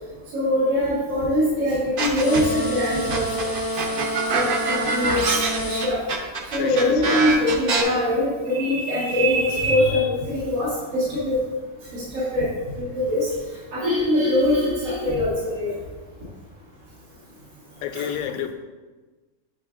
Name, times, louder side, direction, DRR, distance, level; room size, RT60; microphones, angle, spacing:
voice 1, 0.3-3.2 3.7-3.8 4.3-5.3 5.6-6.0 6.5-11.4 11.9-12.5 12.8-13.3 13.7-15.7 17.9-18.0, left 1 dB, 70° right, -9 dB, 2.0 m, -22 dB
sound 1, 2.0-2.6 3.1-7.8, right 4 dB, 55° right, 0.7 m, -24 dB
sound 2, 2.2-5.9, equal, 35° left, 0.3 m, -28 dB
voice 2, 6.6-7.3 17.8-18.5, left 9 dB, 75° left, 7 dB, 1.0 m, -29 dB
8.8 x 4.8 x 2.4 m, 1.3 s
omnidirectional pair, 1.5 m